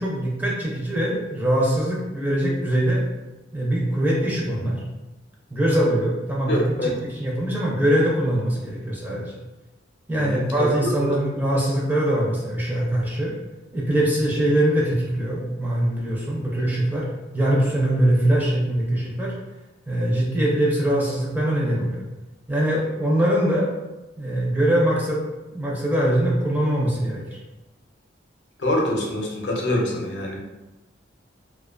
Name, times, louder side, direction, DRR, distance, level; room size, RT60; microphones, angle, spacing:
voice 1, 0.0-3.0 3.5-4.8 5.5-6.5 6.8-9.3 10.1-13.3 13.7-17.1 17.3-19.3 19.9-22.0 22.5-23.7 24.2-25.2 25.5-27.4, right 1 dB, 10° right, -5 dB, 0.4 m, -22 dB
voice 2, 6.5-7.0 10.2-11.1 28.6-30.4, left 1 dB, 70° left, -1 dB, 0.6 m, -25 dB
2.4 x 2.2 x 2.4 m, 1.1 s
head